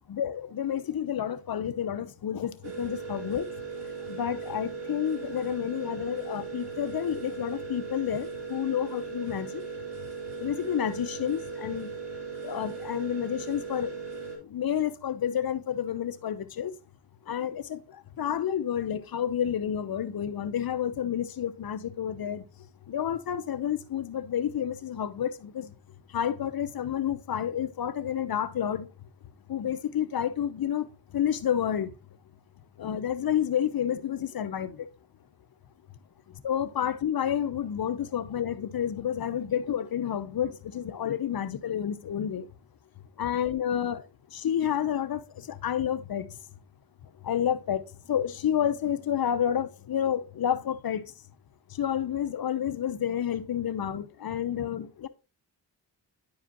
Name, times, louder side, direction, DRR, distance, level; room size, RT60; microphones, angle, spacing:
voice 1, 0.1-3.5 4.1-9.6 10.4-11.9 12.4-13.9 14.5-16.7 17.3-17.8 18.2-22.4 22.9-25.7 26.1-28.9 29.5-30.8 31.1-31.9 32.8-34.8 36.4-42.5 43.2-44.0 44.3-45.2 45.5-46.2 47.2-47.8 48.1-51.0 51.8-55.1, left 9 dB, 55° left, 0.8 m, -29 dB
sound 1, 2.6-14.4, right 5 dB, 75° right, 2.9 m, -38 dB
10.0 x 4.8 x 2.9 m
cardioid pair, 75°, 42 cm